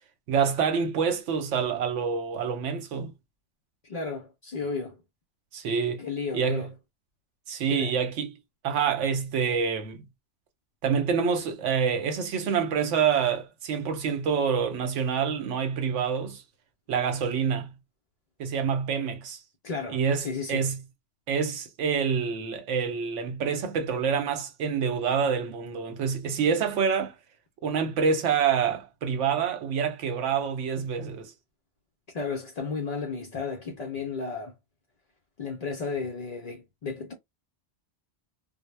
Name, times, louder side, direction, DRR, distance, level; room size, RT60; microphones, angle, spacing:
voice 1, 0.3-3.1 5.5-6.0 6.3-6.7 7.5-8.4 8.6-10.0 10.8-16.4 16.9-17.7 18.4-19.4 19.9-20.8 21.3-27.1 27.6-31.3, right 6 dB, 80° right, 1.0 m, -27 dB
voice 2, 3.8-5.0 6.0-6.7 7.7-7.9 19.6-20.7 32.1-34.6 35.4-37.1, left 4 dB, 60° left, 0.4 m, -33 dB
2.0 x 2.0 x 3.1 m
omnidirectional pair, 1.2 m